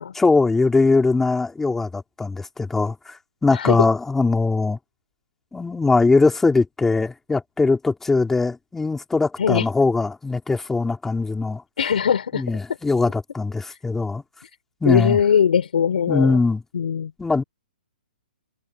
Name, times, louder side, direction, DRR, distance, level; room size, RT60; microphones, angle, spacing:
voice 1, 0.2-4.8 5.5-11.6 12.3-14.2 14.8-15.2 16.1-16.6 17.2-17.4, left 3 dB, 5° left, 3.5 m, -21 dB
voice 2, 3.5-3.9 9.4-9.7 11.8-12.4 13.7-13.8 14.8-16.4 16.7-17.1, left 7 dB, 70° left, 4.3 m, -20 dB
hypercardioid pair, 150°, 5 cm